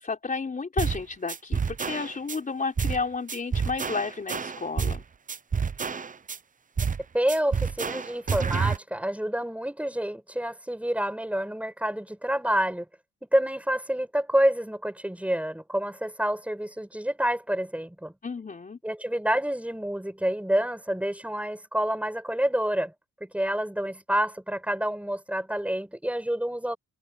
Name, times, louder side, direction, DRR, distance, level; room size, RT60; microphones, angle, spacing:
voice 1, 0.0-5.0 18.2-18.8, left 4 dB, 25° left, 4.1 m, -32 dB
sound 1, 0.8-1.0 1.3-2.4 2.8-3.0 3.3-5.0 5.3-6.4 6.8-7.0 7.3-8.8, right 6 dB, 25° right, 0.9 m, -28 dB
voice 2, 7.1-12.9 13.3-18.1 18.8-22.9 23.2-26.8, right 1 dB, 5° right, 6.0 m, -28 dB
cardioid pair, 90°, 30 cm